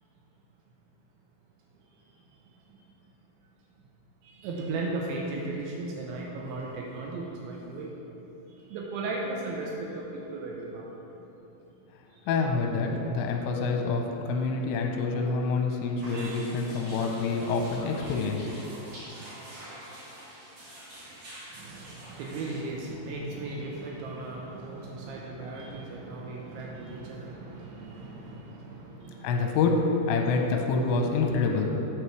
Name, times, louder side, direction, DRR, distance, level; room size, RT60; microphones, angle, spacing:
voice 1, 4.2-7.9 8.5-10.9 12.1-12.2 16.1-16.3 16.7-16.8 21.5-29.6, right 2 dB, 80° right, -2 dB, 3.0 m, -36 dB
voice 2, 12.3-18.5 29.2-31.7, left 4 dB, 80° left, 2 dB, 2.8 m, -27 dB
sound 1, 16.0-22.6, right 1 dB, 50° right, 1.6 m, -46 dB
11.0 x 8.2 x 3.2 m, 3.0 s
omnidirectional pair, 5.7 m